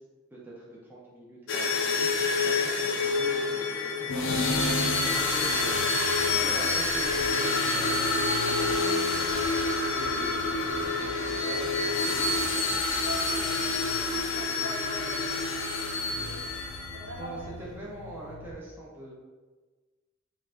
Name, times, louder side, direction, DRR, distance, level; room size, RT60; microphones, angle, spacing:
voice 1, 0.3-5.8 6.1-9.5 9.9-13.1 17.2-19.1, right 1 dB, 10° right, -5 dB, 0.6 m, -43 dB
sound 1, 1.5-17.1, left 3 dB, 85° left, 0.6 m, -27 dB
sound 2, 4.5-18.5, left 1 dB, 40° left, 0.8 m, -45 dB
voice 2, 5.0-5.9 8.4-9.0 13.0-15.3 15.6-16.4 16.9-17.4, left 1 dB, 70° right, -4 dB, 1.3 m, -43 dB
4.5 x 2.4 x 3.7 m, 1.3 s
head